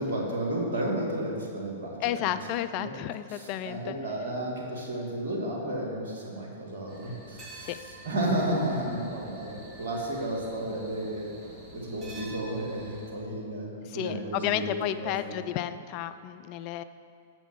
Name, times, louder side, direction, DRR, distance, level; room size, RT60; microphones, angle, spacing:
voice 1, 0.0-2.3 2.7-2.9 3.3-7.7 8.1-11.3 11.7-15.4, right 1 dB, 65° right, -2 dB, 2.1 m, -32 dB
voice 2, 2.0-4.0 7.6-7.8 13.8-16.8, left 12 dB, 40° left, 12 dB, 0.3 m, -32 dB
sound 1, 6.9-13.1, right 1 dB, 25° right, 2.0 m, -47 dB
7.0 x 6.1 x 7.2 m, 2.4 s
figure-of-eight pair, 105°, 0 cm